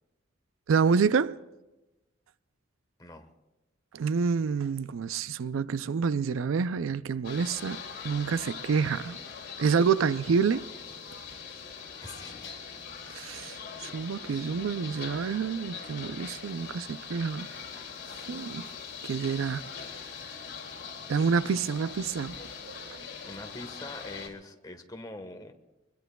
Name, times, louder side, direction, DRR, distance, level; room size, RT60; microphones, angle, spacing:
voice 1, 0.7-1.4 3.9-7.8 8.0-9.2 9.6-10.6 13.2-13.6 13.8-17.5 18.3-18.7 19.0-19.6 21.1-22.4 22.6-23.0, right 5 dB, 85° right, 0.4 m, -28 dB
voice 2, 3.0-3.3 12.0-12.5 23.2-25.5, left 2 dB, 20° left, 1.2 m, -43 dB
sound 1, 7.2-24.3, left 6 dB, 60° left, 3.0 m, -42 dB
24.0 x 21.5 x 2.3 m
head